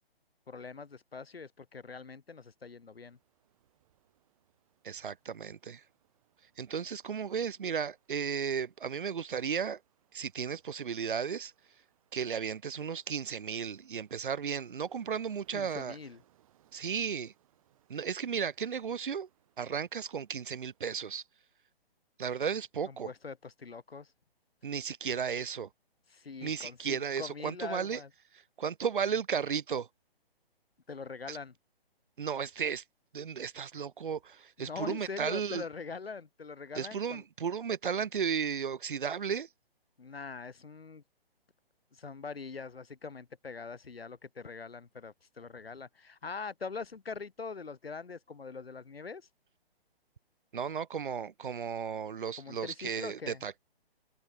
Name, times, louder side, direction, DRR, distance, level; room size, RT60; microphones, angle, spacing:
voice 1, 0.5-3.2 15.5-16.2 22.9-24.1 26.1-28.1 30.9-31.5 34.6-37.2 40.0-41.0 41.9-49.3 52.4-53.5, left 5 dB, 70° left, 1.4 m, -43 dB
Ocean, 2.5-21.6, right 13 dB, 35° right, 5.9 m, -71 dB
voice 2, 4.8-5.8 6.6-9.8 10.1-11.5 12.1-15.9 16.7-17.3 17.9-19.3 19.6-21.2 22.2-23.1 24.6-25.7 26.4-28.0 28.6-29.9 31.3-31.4 32.2-32.8 33.1-35.6 36.7-39.5 50.5-53.6, right 7 dB, 55° right, 1.1 m, -34 dB
figure-of-eight pair, 135°, 30 cm